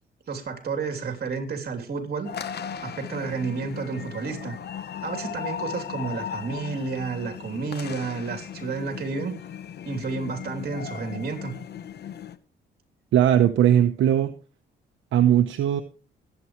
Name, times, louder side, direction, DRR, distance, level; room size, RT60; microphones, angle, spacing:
voice 1, 0.3-2.3 2.8-4.6 5.0-9.3 9.8-11.5, right 4 dB, 50° right, 3.1 m, -31 dB
sound 1, 2.2-12.4, left 8 dB, 55° left, 1.1 m, -37 dB
voice 2, 13.1-14.3 15.1-15.8, right 10 dB, 75° right, 1.0 m, -19 dB
21.5 x 8.5 x 3.1 m
cardioid pair, 90°, 20 cm